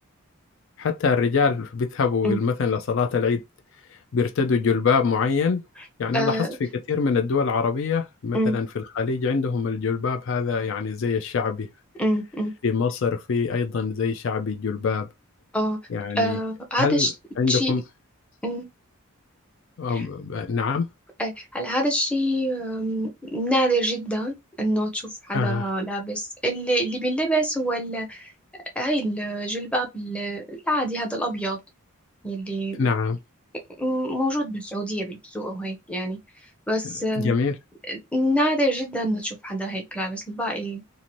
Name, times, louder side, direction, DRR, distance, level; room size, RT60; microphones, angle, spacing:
voice 1, 0.8-3.4 3.9-5.6 6.0-6.4 6.9-11.7 12.6-15.1 15.9-16.4 16.8-17.1 17.4-17.8 19.8-20.9 25.3-25.7 32.8-33.2 36.8-37.6, left 5 dB, 55° left, 0.4 m, -24 dB
voice 2, 6.1-6.5 8.3-8.6 12.0-12.5 15.5-15.8 16.1-17.1 17.5-17.8 18.4-18.7 19.9-20.1 21.2-31.6 32.2-32.8 33.8-36.2 36.7-37.3 37.9-40.8, equal, 5° left, 0.6 m, -26 dB
2.7 x 2.5 x 3.0 m
head